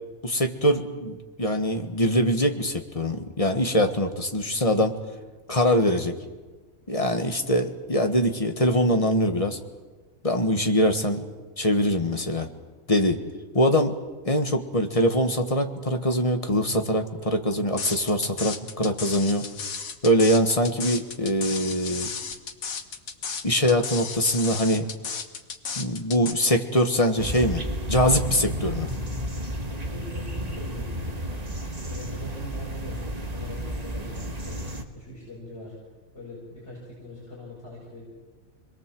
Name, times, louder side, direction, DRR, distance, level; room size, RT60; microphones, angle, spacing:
voice 1, 0.2-5.0 5.5-6.1 6.9-9.6 10.2-11.2 11.6-12.5 12.9-13.2 13.5-14.0 14.2-19.4 20.0-22.1 23.4-24.9 25.7-28.9, equal, 25° left, 6 dB, 1.7 m, -23 dB
sound 1, 17.8-26.3, left 5 dB, 80° left, 1.8 m, -34 dB
sound 2, 27.2-34.8, equal, 30° right, 1.7 m, -32 dB
voice 2, 29.7-31.4 31.9-34.6 34.9-35.8 36.1-38.0, equal, 50° left, -6 dB, 7.1 m, -42 dB
26.5 x 22.0 x 7.8 m, 1.3 s
omnidirectional pair, 1.5 m